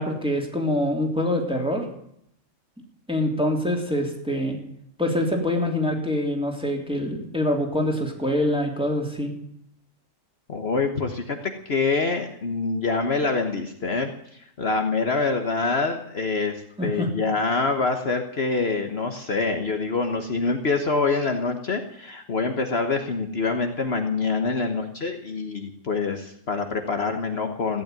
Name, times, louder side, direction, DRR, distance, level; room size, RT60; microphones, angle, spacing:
voice 1, 0.0-1.8 3.1-4.6 5.0-9.3 16.8-17.1, left 1 dB, 5° right, 1 dB, 3.1 m, -25 dB
voice 2, 10.5-27.8, left 4 dB, 55° left, 5 dB, 1.4 m, -25 dB
15.0 x 10.5 x 9.1 m, 0.73 s
omnidirectional pair, 1.3 m